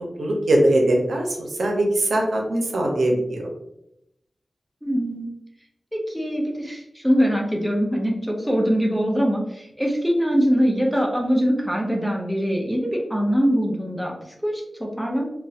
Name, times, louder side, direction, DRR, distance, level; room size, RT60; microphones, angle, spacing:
voice 1, 0.2-3.5, right 1 dB, 85° right, 0 dB, 0.6 m, -21 dB
voice 2, 4.8-5.3 5.9-15.3, equal, 5° right, -1 dB, 0.6 m, -23 dB
3.0 x 2.2 x 2.7 m, 0.82 s
wide cardioid pair, 85°, 0 cm